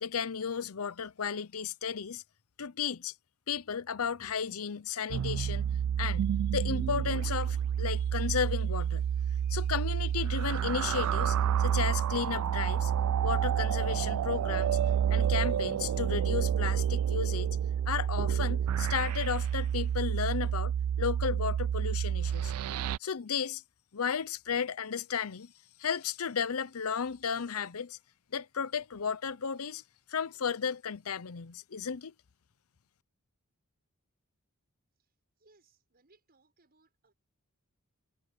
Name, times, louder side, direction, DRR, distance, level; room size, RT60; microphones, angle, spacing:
voice 1, 0.0-2.2 2.6-3.1 3.5-5.7 6.0-9.1 9.5-12.9 13.2-14.8 15.1-17.5 17.9-20.7 21.0-22.5 23.0-23.6 23.9-25.5 25.8-28.0 28.3-29.8 30.1-32.1, left 6 dB, 80° left, 0.7 m, -34 dB
sound 1, 5.1-23.0, right 9 dB, 80° right, 0.3 m, -29 dB
voice 2, 35.0-37.1, right 3 dB, 45° right, 6.7 m, -67 dB
head